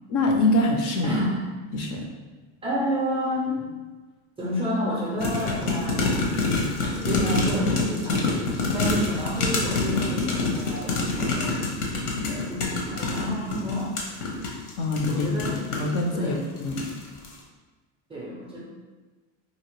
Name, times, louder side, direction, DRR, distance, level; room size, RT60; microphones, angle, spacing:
voice 1, 0.1-1.2 1.7-2.0 14.8-15.3 15.8-16.8, left 2 dB, 45° left, 2 dB, 0.4 m, -24 dB
voice 2, 1.0-1.4 2.6-3.7 4.4-6.3 6.8-8.2 8.7-11.6 12.2-13.9 15.1-15.6 16.1-16.4 18.1-18.6, equal, 15° right, -5 dB, 0.4 m, -29 dB
sound 1, 5.2-16.0 16.6-17.0 17.2-17.3, left 3 dB, 80° left, 0.9 m, -26 dB
2.8 x 2.7 x 3.0 m, 1.3 s
supercardioid pair, 130°, 44 cm